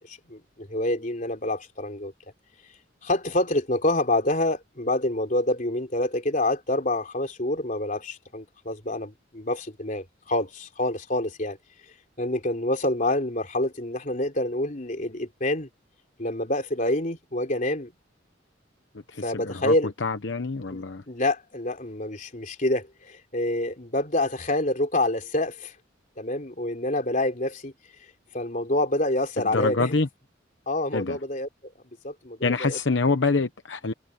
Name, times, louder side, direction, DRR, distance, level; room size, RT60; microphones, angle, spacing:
voice 1, 0.1-2.1 3.0-11.6 12.2-15.7 16.2-17.9 19.2-19.9 20.7-25.7 26.2-27.7 28.3-30.0 30.7-31.5 32.0-32.8, left 1 dB, 40° left, 3.7 m, -27 dB
voice 2, 19.1-19.7 20.0-21.0 29.5-30.1 30.9-31.2 32.4-33.9, left 3 dB, 70° left, 0.9 m, -26 dB
head